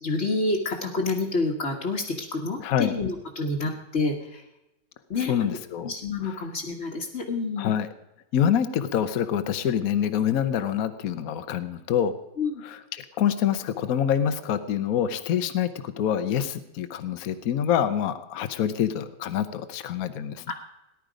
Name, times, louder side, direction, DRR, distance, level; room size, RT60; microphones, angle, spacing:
voice 1, 0.0-4.4 5.1-5.6 5.8-7.7 12.4-12.6 20.5-20.6, left 3 dB, 40° left, -2 dB, 1.6 m, -28 dB
voice 2, 2.6-2.9 5.3-5.9 6.2-6.3 7.6-7.9 8.3-12.1 12.6-20.4, left 9 dB, 60° left, 11 dB, 1.2 m, -26 dB
18.5 x 11.0 x 5.1 m, 0.94 s
omnidirectional pair, 1.8 m